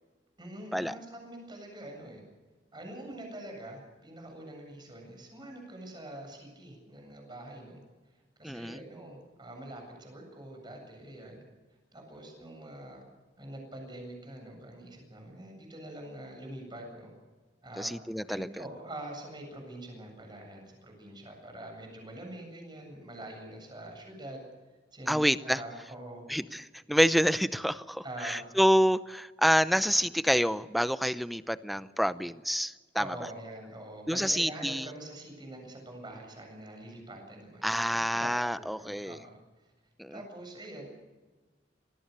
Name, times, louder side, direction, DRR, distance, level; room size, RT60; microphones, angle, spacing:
voice 1, 0.4-2.2 2.7-7.8 8.4-11.4 11.9-13.0 13.4-17.1 17.6-17.9 18.3-24.5 24.9-26.2 28.0-28.4 33.0-38.3 38.6-39.7 40.1-40.9, right 1 dB, 25° right, 2 dB, 7.8 m, -45 dB
voice 2, 8.4-8.8 17.8-18.5 25.1-25.6 26.3-33.0 34.1-34.9 37.6-39.2 40.0-40.2, equal, ahead, 13 dB, 0.7 m, -27 dB
26.5 x 19.5 x 6.8 m, 1.3 s
head